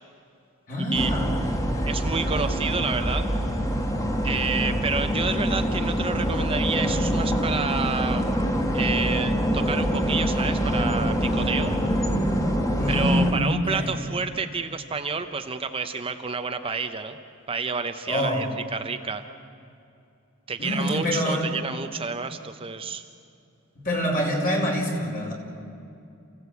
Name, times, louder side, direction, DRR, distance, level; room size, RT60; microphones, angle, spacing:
voice 1, 0.7-1.5 12.7-13.9 18.1-18.5 20.6-21.5 23.7-25.3, left 1 dB, 40° left, 0 dB, 4.9 m, -25 dB
sound 1, 0.9-13.3, equal, 15° left, 1.8 m, -25 dB
voice 2, 1.9-3.3 4.2-8.2 8.7-11.7 12.9-17.2 17.5-18.5 18.7-19.2 20.5-23.0, right 5 dB, 25° right, 7 dB, 0.8 m, -29 dB
29.0 x 16.5 x 8.3 m, 2.6 s
head